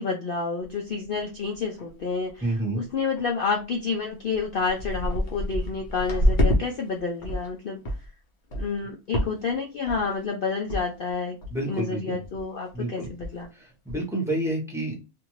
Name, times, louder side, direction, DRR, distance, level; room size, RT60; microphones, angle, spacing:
voice 1, 0.0-7.8 8.5-11.4 11.6-13.5, left 4 dB, 65° left, 1 dB, 0.5 m, -29 dB
sound 1, 0.6-0.7 1.2-1.3 1.5-2.0 2.3-2.6 3.2-3.3 3.9-4.0 4.3-6.6 7.0-7.5 7.8-8.1 8.5-8.8 9.1-9.5 9.9-10.2 10.7-10.8 11.1-11.2 11.4-11.8 12.2-12.4 12.7-12.8 13.0-13.4 13.9-14.0, equal, 40° left, 0.8 m, -27 dB
voice 2, 2.4-2.8 11.5-12.2 12.7-13.1 13.5-15.0, right 1 dB, ahead, -1 dB, 0.8 m, -29 dB
2.7 x 2.5 x 3.0 m, 0.29 s
omnidirectional pair, 1.5 m